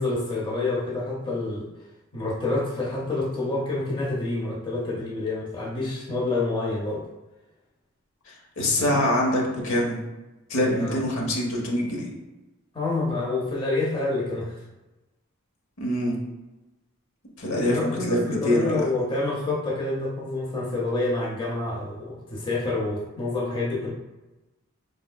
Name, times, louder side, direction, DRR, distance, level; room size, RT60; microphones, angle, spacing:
voice 1, 0.0-1.7 2.1-7.0 8.7-9.0 10.5-11.0 12.7-14.6 17.5-23.9, left 2 dB, 25° left, -5 dB, 0.7 m, -28 dB
voice 2, 8.3-10.0 10.5-12.1 15.8-16.2 17.4-18.8, left 1 dB, 65° left, -1 dB, 0.9 m, -24 dB
4.9 x 3.3 x 2.3 m, 1.1 s
head